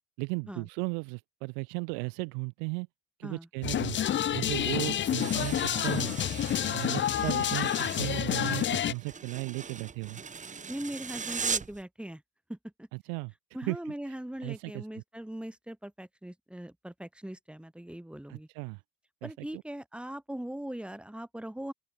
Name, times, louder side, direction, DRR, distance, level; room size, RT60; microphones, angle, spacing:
voice 1, 0.2-2.9 3.2-4.0 4.3-6.2 6.6-10.2 13.1-13.3 13.7-14.1 14.4-15.0 18.3-18.8 19.2-19.6, right 40 dB or more, 85° right, 4.1 m, -36 dB
sound 1, 3.6-8.9, left 10 dB, 30° left, 1.0 m, -29 dB
sound 2, 5.0-11.8, right 5 dB, 20° right, 2.8 m, -39 dB
voice 2, 10.5-12.2 12.5-12.9 13.5-18.5 19.2-21.7, right 1 dB, 5° right, 4.1 m, -40 dB
open air
cardioid pair, 140°, 36 cm